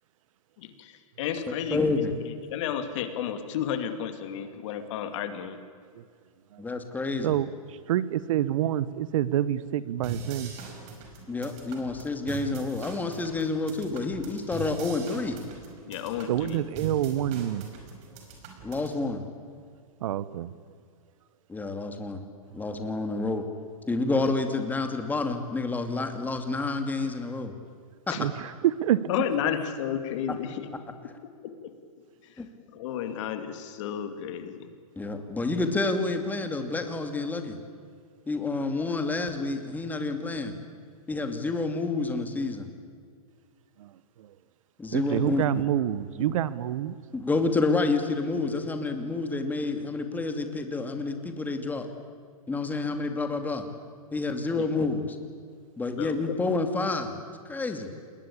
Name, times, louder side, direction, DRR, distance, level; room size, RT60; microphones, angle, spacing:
voice 1, 0.6-0.9 1.2-1.8 2.5-5.6 15.9-16.6 28.1-28.2 29.1-30.7 32.7-34.7 45.1-45.3 54.6-54.7 56.0-56.4, left 9 dB, 55° left, 2.6 m, -32 dB
voice 2, 1.5-2.1 6.6-7.4 11.3-15.4 18.6-19.3 21.5-22.3 22.5-23.4 23.9-27.5 28.1-28.2 32.4-32.5 35.0-37.6 38.3-40.5 41.1-42.7 44.8-45.5 47.1-51.9 52.5-53.6 54.1-55.2 55.8-57.9, left 3 dB, 10° left, 2.5 m, -29 dB
voice 3, 7.2-10.5 16.3-17.7 20.0-20.5 28.2-29.0 43.8-43.9 44.2-44.3 44.9-46.9, right 12 dB, 60° right, 1.1 m, -27 dB
sound 1, 10.0-19.0, right 3 dB, 40° right, 5.3 m, -42 dB
28.0 x 21.0 x 8.6 m
hypercardioid pair, 130°, 19 cm